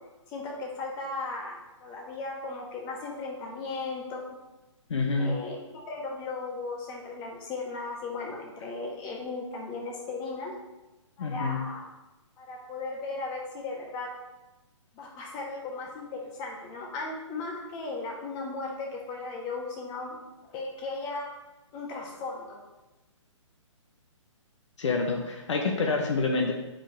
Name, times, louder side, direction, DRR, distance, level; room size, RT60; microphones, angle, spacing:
voice 1, 0.3-4.2 5.2-10.5 11.2-11.9 12.4-14.1 14.9-20.2 20.5-21.3 21.7-22.6, left 3 dB, 25° left, -1 dB, 1.3 m, -36 dB
voice 2, 4.9-5.4 11.2-11.6 24.8-26.5, left 3 dB, 65° left, 2 dB, 0.9 m, -27 dB
5.0 x 3.9 x 4.9 m, 1.1 s
figure-of-eight pair, 135°, 16 cm